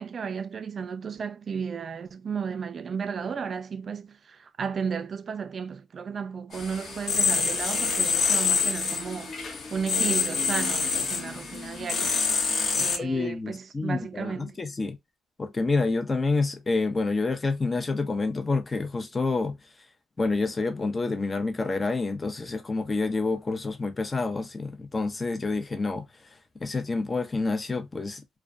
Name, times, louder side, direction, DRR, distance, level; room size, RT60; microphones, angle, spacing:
voice 1, 0.0-9.3 9.7-12.1 12.7-14.6, right 6 dB, 45° right, 0.3 m, -34 dB
sound 1, 6.5-13.0, left 5 dB, 55° left, 0.8 m, -26 dB
voice 2, 13.0-15.0 15.4-19.6 20.2-26.1 26.6-28.2, left 3 dB, 25° left, 0.6 m, -28 dB
2.3 x 2.2 x 2.5 m
cardioid pair, 90°, 0 cm